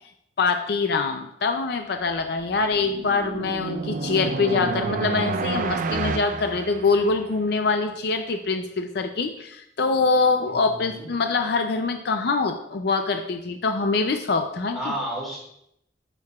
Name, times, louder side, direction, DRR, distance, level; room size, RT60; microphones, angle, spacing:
voice 1, 0.4-14.9, left 4 dB, 60° left, 6 dB, 0.5 m, -24 dB
sound 1, 2.2-7.4, right 4 dB, 45° right, 0.4 m, -30 dB
voice 2, 10.5-11.1 14.7-15.4, right 1 dB, ahead, -5 dB, 2.4 m, -32 dB
8.8 x 6.7 x 2.4 m, 0.76 s
head